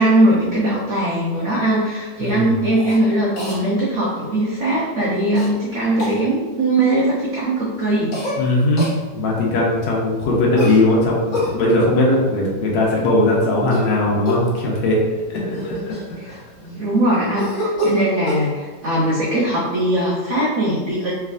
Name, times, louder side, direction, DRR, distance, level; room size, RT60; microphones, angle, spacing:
voice 1, 0.0-8.2 16.2-21.1, right 1 dB, 60° right, -6 dB, 0.8 m, -20 dB
voice 2, 2.2-2.5 8.4-15.0 15.3-15.9 16.2-16.3, left 1 dB, 90° left, -3 dB, 1.5 m, -19 dB
Cough, 2.7-3.0 3.4-3.6 5.4-5.5 6.0-6.2 8.1-8.4 8.8-9.0 10.6-11.5 13.6-13.9 14.3-14.5 15.2-15.3 15.5-16.6 17.4-18.5, equal, 55° left, 1.1 m, -25 dB
3.4 x 3.2 x 2.4 m, 1.3 s
omnidirectional pair, 1.9 m